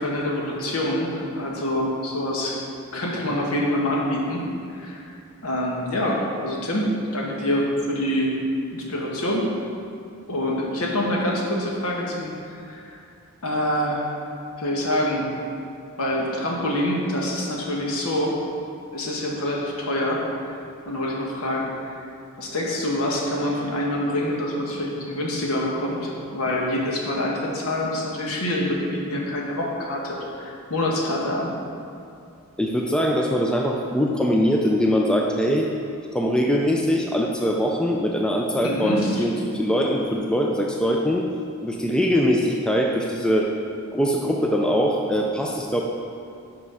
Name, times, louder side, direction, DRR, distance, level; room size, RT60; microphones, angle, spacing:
voice 1, 0.0-2.6 2.9-5.1 5.4-8.3 8.7-9.5 10.3-12.8 13.4-14.1 14.6-15.3 16.0-18.4 18.9-20.6 20.8-21.9 22.4-31.5 38.6-39.2, left 1 dB, 75° left, -2 dB, 1.3 m, -26 dB
voice 2, 32.6-35.7 36.1-41.3 41.6-43.5 43.9-45.8, equal, 5° left, 0 dB, 0.3 m, -22 dB
5.8 x 5.3 x 5.5 m, 2.5 s
head